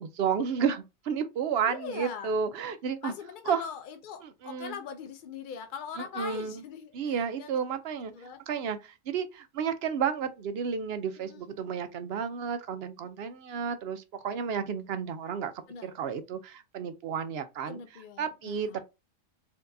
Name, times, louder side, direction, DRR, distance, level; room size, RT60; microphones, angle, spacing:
voice 1, 0.0-3.1 3.5-3.6 4.2-4.7 6.0-6.6 6.9-8.1 8.5-15.5 15.8-17.8 18.2-18.8, right 7 dB, 65° right, 0.7 m, -32 dB
voice 2, 1.7-2.3 3.0-7.6 8.1-8.4 11.2-11.5 15.7-16.0 17.7-18.8, left 7 dB, 70° left, 0.4 m, -41 dB
4.4 x 2.7 x 2.6 m
omnidirectional pair, 1.4 m